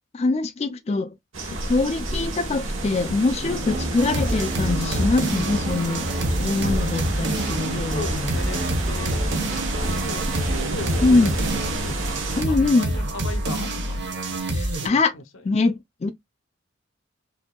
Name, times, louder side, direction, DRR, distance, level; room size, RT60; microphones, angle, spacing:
voice 1, 0.1-1.2 1.5-6.1 6.4-8.3 11.0-11.3 12.4-12.9 14.4-15.1 15.4-16.1, left 3 dB, 30° left, 0.3 m, -23 dB
sound 1, 1.3-12.4, right 2 dB, 80° right, 1.2 m, -31 dB
sound 2, 3.4-11.7, right 1 dB, 40° right, 0.8 m, -32 dB
sound 3, 4.0-14.9, right 1 dB, 60° right, 1.1 m, -27 dB
voice 2, 8.0-10.2 10.7-12.0 12.5-14.0 14.7-15.2, left 4 dB, 80° left, 0.8 m, -37 dB
5.1 x 2.7 x 2.2 m
head